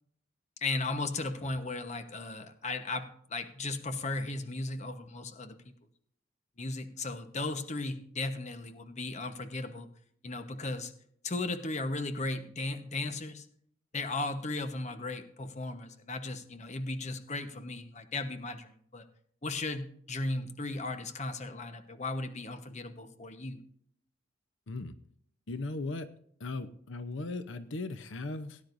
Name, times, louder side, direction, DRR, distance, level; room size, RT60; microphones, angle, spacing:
voice 1, 0.6-5.6 6.6-9.9 10.2-10.9 11.2-13.4 13.9-19.1 19.4-23.6, left 2 dB, 40° left, 8 dB, 1.1 m, -36 dB
voice 2, 25.5-26.1 26.4-28.6, left 2 dB, 85° left, 11 dB, 0.8 m, -37 dB
18.0 x 10.0 x 2.6 m, 0.65 s
head